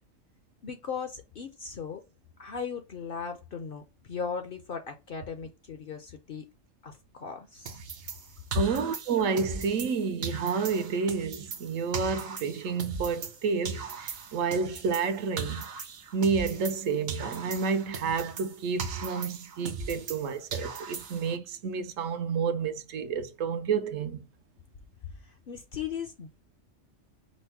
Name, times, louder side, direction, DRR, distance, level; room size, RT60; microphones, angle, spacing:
voice 1, 0.6-2.0 2.4-6.5 6.8-7.7 25.2-26.4, left 6 dB, 55° left, 0.6 m, -38 dB
sound 1, 7.7-10.0 10.2-13.4 13.6-16.8 17.1-20.2 20.5-21.4, right 5 dB, 55° right, 0.9 m, -38 dB
voice 2, 8.5-15.7 16.1-24.3, right 5 dB, 75° right, 1.0 m, -30 dB
5.2 x 2.1 x 4.5 m
omnidirectional pair, 1.4 m